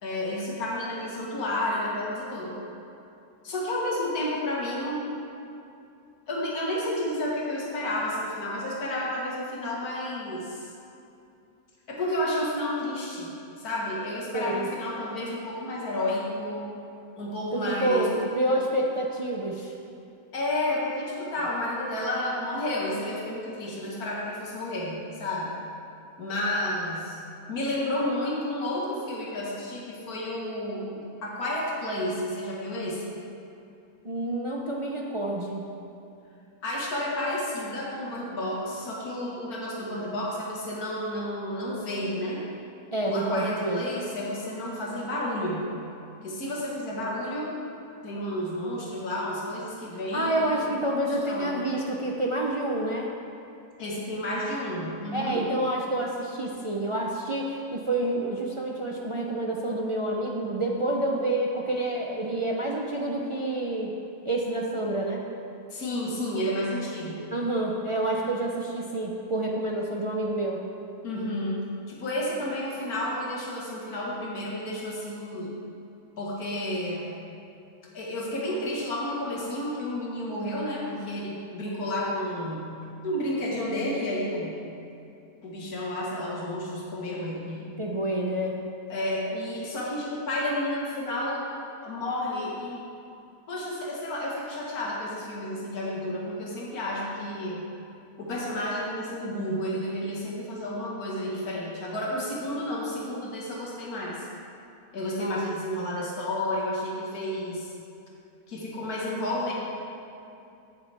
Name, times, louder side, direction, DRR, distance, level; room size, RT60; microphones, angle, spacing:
voice 1, 0.0-2.6 3.4-5.0 6.3-10.7 11.9-16.7 17.2-18.1 20.3-25.5 26.2-27.2 27.5-33.2 36.6-42.4 43.1-45.7 46.2-47.6 48.0-50.7 51.1-51.6 53.8-55.5 65.7-67.3 71.0-75.6 76.2-77.2 77.9-82.7 83.0-84.6 85.4-87.7 88.9-91.5 91.8-92.8 93.5-97.6 98.2-104.3 104.9-107.7 108.5-109.5, left 1 dB, 75° left, -4 dB, 2.1 m, -31 dB
voice 2, 14.3-14.7 17.5-19.7 34.0-35.7 42.9-43.8 50.1-53.1 55.1-63.9 64.2-65.2 67.3-70.6 87.8-88.6 105.2-105.5 105.9-106.0, right 1 dB, 35° right, -1 dB, 0.5 m, -28 dB
16.0 x 7.2 x 3.5 m, 2.6 s
omnidirectional pair, 1.6 m